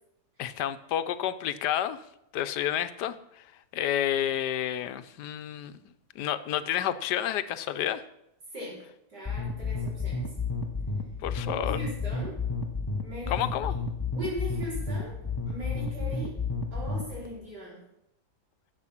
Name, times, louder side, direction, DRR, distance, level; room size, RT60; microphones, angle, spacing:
voice 1, 0.4-2.0 2.3-3.1 3.7-5.8 6.2-8.0 11.2-11.8 13.3-13.7, left 11 dB, 90° left, 13 dB, 1.3 m, -30 dB
voice 2, 9.1-10.3 11.4-12.4 13.0-13.4 14.1-15.1 15.5-16.3 16.7-17.8, equal, 80° right, -6 dB, 5.4 m, -39 dB
sound 1, 9.3-17.3, left 4 dB, 15° left, 0.8 m, -31 dB
12.5 x 7.5 x 5.9 m, 0.81 s
omnidirectional pair, 1.8 m